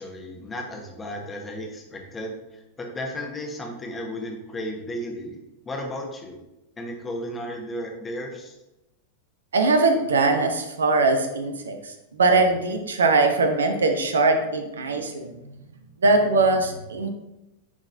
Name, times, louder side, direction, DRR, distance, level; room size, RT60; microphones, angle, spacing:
voice 1, 0.0-5.4 5.6-6.4 6.8-8.5, left 1 dB, 15° left, 1 dB, 1.2 m, -34 dB
voice 2, 9.5-15.4 16.0-17.1, right 3 dB, 70° right, 6 dB, 0.8 m, -21 dB
9.4 x 3.9 x 2.6 m, 0.95 s
figure-of-eight pair, 90°, 0 cm